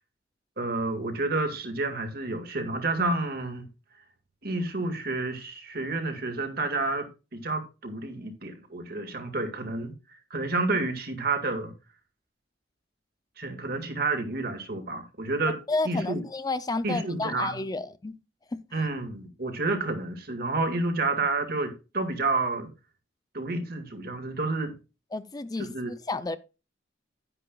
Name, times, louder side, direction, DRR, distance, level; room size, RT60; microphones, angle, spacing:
voice 1, 0.6-3.7 4.4-7.1 7.3-11.7 13.4-15.6 15.8-16.2 16.8-17.6 18.7-22.7 23.3-24.7 25.6-25.9, right 2 dB, 60° right, 2.0 m, -30 dB
voice 2, 15.7-18.1 18.5-18.6 25.1-25.7 26.1-26.4, left 3 dB, 20° left, 0.5 m, -31 dB
11.0 x 9.9 x 2.4 m
head